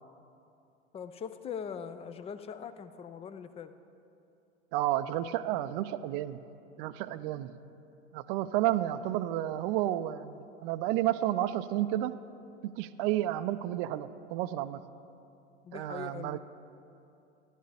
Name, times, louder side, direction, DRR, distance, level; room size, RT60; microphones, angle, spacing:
voice 1, 0.9-3.7 15.6-16.4, left 7 dB, 20° left, 11 dB, 0.4 m, -41 dB
voice 2, 4.7-6.4 6.8-7.6 8.1-12.2 12.6-14.8 15.7-16.4, right 13 dB, 50° right, 13 dB, 0.5 m, -31 dB
14.5 x 11.5 x 3.4 m, 2.7 s
hypercardioid pair, 95°, 35 cm